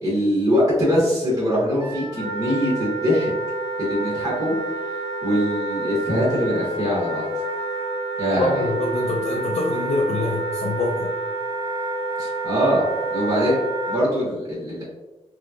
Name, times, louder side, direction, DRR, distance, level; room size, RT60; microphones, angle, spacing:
voice 1, 0.0-3.3 3.8-4.5 4.9-7.3 8.2-8.7 12.2-12.8 13.1-14.8, equal, 35° right, -8 dB, 1.3 m, -22 dB
Wind instrument woodwind instrument, 1.8-14.0, right 2 dB, 55° right, 0.8 m, -28 dB
voice 2, 8.3-11.1, left 2 dB, 80° left, -2 dB, 0.5 m, -25 dB
3.3 x 2.9 x 2.4 m, 1.1 s
wide cardioid pair, 105°, 11 cm